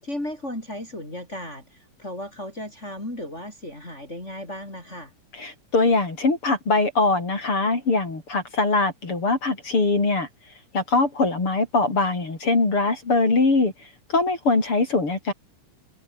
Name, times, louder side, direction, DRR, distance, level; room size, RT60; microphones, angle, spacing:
voice 1, 0.0-5.1, left 1 dB, 20° left, 7.4 m, -35 dB
voice 2, 5.3-10.3 10.7-13.7 14.1-15.3, left 3 dB, 45° left, 5.7 m, -22 dB
omnidirectional pair, 3.5 m